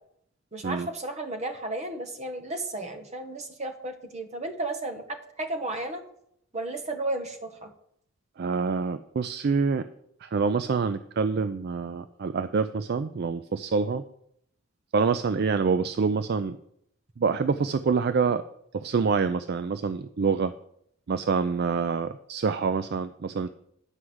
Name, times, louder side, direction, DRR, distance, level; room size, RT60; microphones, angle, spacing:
voice 1, 0.5-6.0 6.5-7.7, right 2 dB, 30° right, 6 dB, 1.1 m, -33 dB
voice 2, 8.4-9.9 10.2-14.0 14.9-16.6 17.2-18.4 18.7-20.5 21.1-23.5, right 5 dB, 50° right, 11 dB, 0.4 m, -26 dB
9.9 x 4.8 x 7.9 m, 0.72 s
head